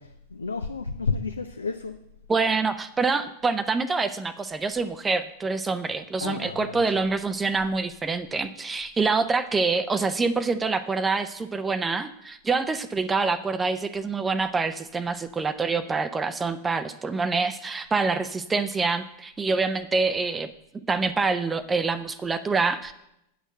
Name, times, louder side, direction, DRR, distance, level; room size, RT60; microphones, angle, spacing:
voice 1, 0.0-2.0 6.2-7.0, left 4 dB, 75° left, 7 dB, 0.5 m, -31 dB
voice 2, 2.3-20.5 20.7-22.9, right 4 dB, 15° right, 11 dB, 0.5 m, -26 dB
8.9 x 6.3 x 6.4 m, 0.82 s
figure-of-eight pair, 90°, 0 cm